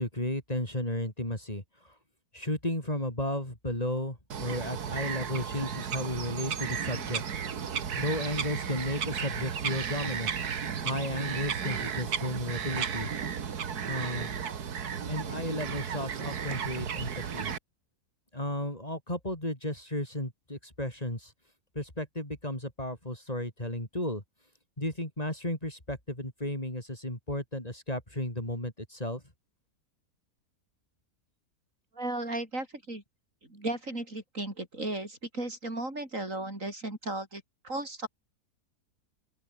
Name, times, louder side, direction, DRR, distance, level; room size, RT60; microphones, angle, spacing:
voice 1, 0.0-1.9 2.3-7.2 8.0-10.3 10.8-13.1 13.8-14.3 15.1-17.5 18.3-21.3 21.8-24.2 24.8-29.2, left 1 dB, 25° left, 5.1 m, -34 dB
Bird vocalization bird call bird song, 4.3-17.6, right 7 dB, 80° right, 2.1 m, -34 dB
voice 2, 31.9-33.0 33.5-38.1, right 2 dB, 55° right, 6.5 m, -35 dB
open air
omnidirectional pair, 1.6 m